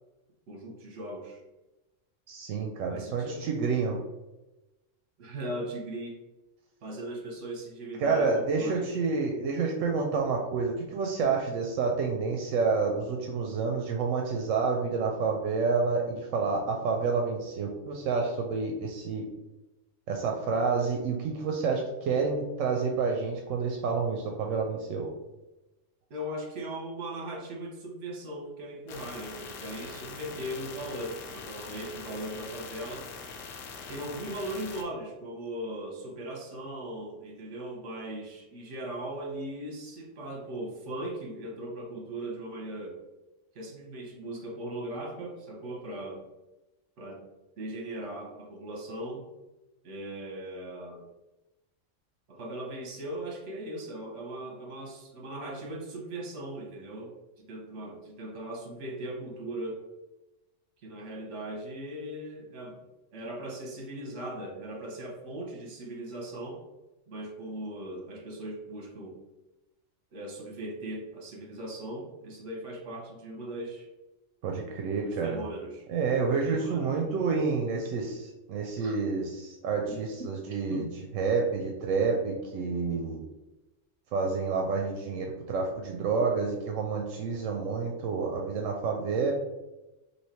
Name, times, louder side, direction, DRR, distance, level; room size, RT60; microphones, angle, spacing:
voice 1, 0.5-1.4 2.9-3.5 5.2-6.2 6.8-8.9 26.1-33.1 33.9-43.0 43.5-46.2 47.0-47.3 47.6-49.2 49.8-51.1 52.3-59.8 60.8-62.8 63.1-66.6 67.1-69.2 70.1-73.9 74.9-75.8 76.3-77.0 78.8-79.0 80.7-80.9, right 1 dB, 70° right, 1 dB, 1.3 m, -39 dB
voice 2, 2.3-4.0 8.0-19.3 20.1-25.1 74.4-75.4 75.9-80.9 81.1-83.2 84.1-89.3, right 4 dB, 85° right, 1 dB, 1.0 m, -29 dB
sound 1, 28.9-34.8, left 5 dB, 90° left, 1.0 m, -43 dB
3.2 x 2.8 x 4.2 m, 1.0 s
omnidirectional pair, 1.3 m